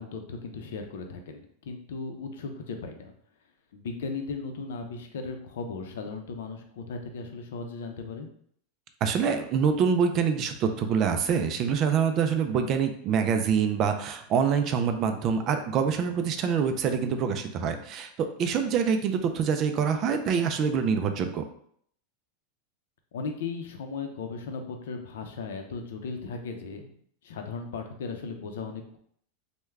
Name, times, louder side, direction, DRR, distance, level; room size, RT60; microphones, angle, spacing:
voice 1, 0.0-3.1 3.7-8.3 23.1-26.9 27.2-29.0, left 4 dB, 85° left, 5 dB, 0.5 m, -37 dB
voice 2, 9.0-21.4, right 6 dB, 30° right, 7 dB, 0.3 m, -25 dB
3.4 x 2.1 x 3.2 m, 0.64 s
supercardioid pair, 160°, 0 cm